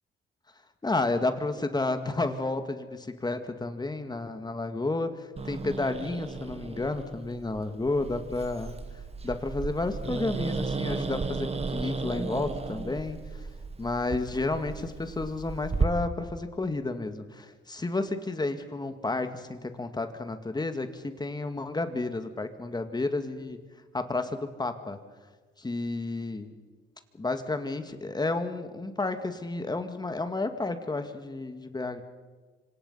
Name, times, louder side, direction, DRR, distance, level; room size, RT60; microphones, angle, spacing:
voice 1, 0.8-8.7 9.2-13.5 13.8-23.6 23.9-25.0 25.6-26.5 27.1-32.0, left 2 dB, 20° left, 8 dB, 2.2 m, -31 dB
Growling, 5.4-15.9, right 4 dB, 30° right, 2.0 m, -34 dB
26.0 x 25.5 x 5.7 m, 1.4 s
cardioid pair, 90°, 20 cm